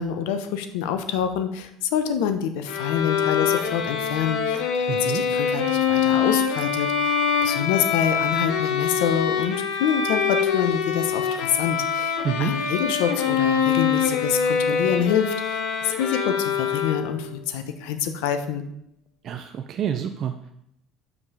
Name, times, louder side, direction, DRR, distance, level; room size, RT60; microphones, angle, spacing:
voice 1, 0.0-18.6, left 8 dB, 90° left, 8 dB, 0.9 m, -27 dB
Bowed string instrument, 2.7-17.3, left 7 dB, 70° left, 1.1 m, -24 dB
voice 2, 4.9-5.2 12.2-12.5 19.2-20.5, right 8 dB, 40° right, 5 dB, 0.5 m, -28 dB
5.4 x 5.1 x 6.6 m, 0.75 s
cardioid pair, 140°, 0 cm